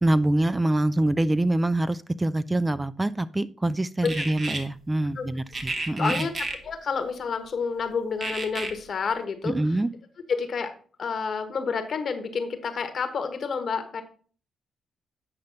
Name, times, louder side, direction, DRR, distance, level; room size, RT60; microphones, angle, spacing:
voice 1, 0.0-6.3 9.4-9.9, right 1 dB, 20° right, 14 dB, 0.4 m, -25 dB
sound 1, 4.0-4.6 5.5-6.6 8.2-8.7, right 2 dB, 50° right, 1.7 m, -31 dB
voice 2, 6.0-6.3 6.6-9.6 10.3-10.7 11.0-14.0, left 5 dB, 60° left, 8 dB, 1.3 m, -29 dB
8.8 x 5.2 x 3.9 m, 0.43 s
supercardioid pair, 55°, 0 cm